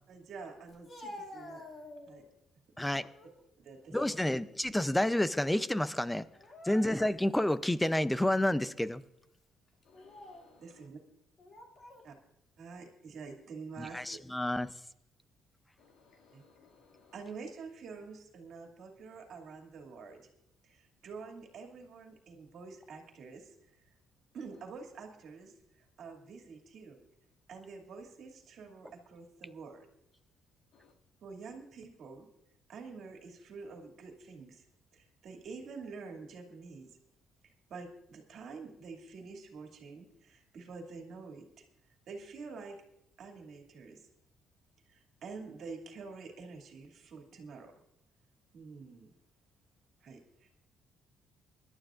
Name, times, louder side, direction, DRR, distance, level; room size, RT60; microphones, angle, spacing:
voice 1, 0.1-1.7 2.1-2.2 3.6-4.4 10.6-11.0 12.0-12.1 12.6-14.2 16.3-16.4 17.1-20.3 20.6-23.9 24.3-27.0 27.5-29.9 31.2-32.3 32.7-34.6 34.9-37.0 37.7-41.6 42.1-42.8 43.2-44.1 44.9-47.7 48.5-49.1 50.0-50.7, right 4 dB, 60° right, 2.4 m, -47 dB
Speech, 0.7-2.3 2.8-3.4 3.8-5.1 5.3-5.5 6.3-7.3 7.9-8.0 8.8-9.0 9.8-10.5 11.4-12.1, left 1 dB, 35° left, 2.3 m, -50 dB
voice 2, 2.8-3.1 3.9-6.3 6.6-9.0 13.8-14.7, left 1 dB, 5° left, 0.5 m, -29 dB
voice 3, 9.9-10.6 15.8-17.1 30.7-30.9, left 5 dB, 70° left, 2.2 m, -63 dB
26.0 x 12.0 x 2.5 m
cardioid pair, 140°, 0 cm